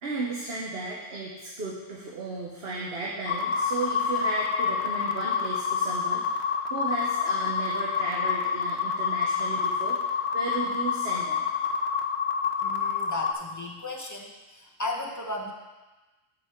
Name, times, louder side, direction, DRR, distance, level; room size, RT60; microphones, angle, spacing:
voice 1, 0.0-11.5, right 3 dB, 65° right, -3 dB, 1.3 m, -35 dB
sound 1, 3.3-13.3, left 6 dB, 80° left, 1.0 m, -28 dB
voice 2, 12.6-15.5, left 2 dB, 20° left, 0 dB, 0.9 m, -35 dB
7.9 x 7.6 x 4.4 m, 1.2 s
omnidirectional pair, 1.1 m